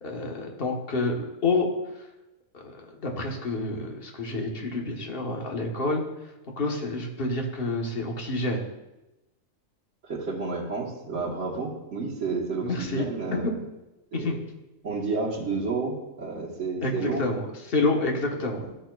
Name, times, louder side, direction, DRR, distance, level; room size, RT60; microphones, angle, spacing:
voice 1, 0.0-1.7 2.5-6.0 6.6-8.6 12.6-13.0 13.3-13.4 14.1-14.4 16.8-17.4 17.7-18.6, left 2 dB, 50° left, 1 dB, 1.3 m, -28 dB
voice 2, 10.0-13.6 14.1-14.4 14.8-17.2 18.2-18.3 18.6-18.7, right 4 dB, 70° right, -7 dB, 1.6 m, -31 dB
13.0 x 6.3 x 2.3 m, 0.98 s
omnidirectional pair, 1.3 m